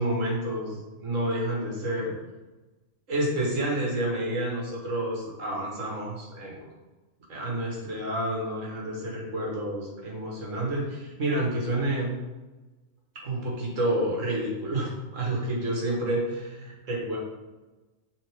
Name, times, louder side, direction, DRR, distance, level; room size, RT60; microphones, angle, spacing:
voice 1, 0.0-2.1 3.1-6.6 7.3-12.2 13.2-17.2, right 1 dB, 75° right, -3 dB, 2.0 m, -29 dB
7.9 x 4.2 x 3.6 m, 1.2 s
omnidirectional pair, 1.3 m